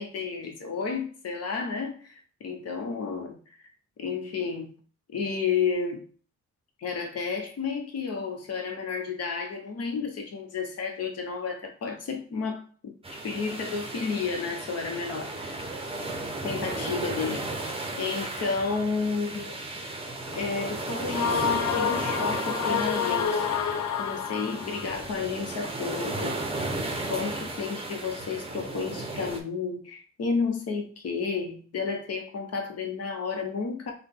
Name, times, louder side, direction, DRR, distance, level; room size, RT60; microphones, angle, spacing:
voice 1, 0.0-3.7 4.0-4.7 5.1-6.0 6.8-15.7 16.4-19.6 20.3-23.6 24.0-26.6 27.1-33.9, left 5 dB, 55° left, 1.0 m, -32 dB
sound 1, 13.0-29.4, right 2 dB, 20° right, 0.7 m, -34 dB
sound 2, 21.1-24.9, left 7 dB, 75° left, 0.5 m, -28 dB
3.8 x 2.3 x 3.5 m
cardioid pair, 90°, 30 cm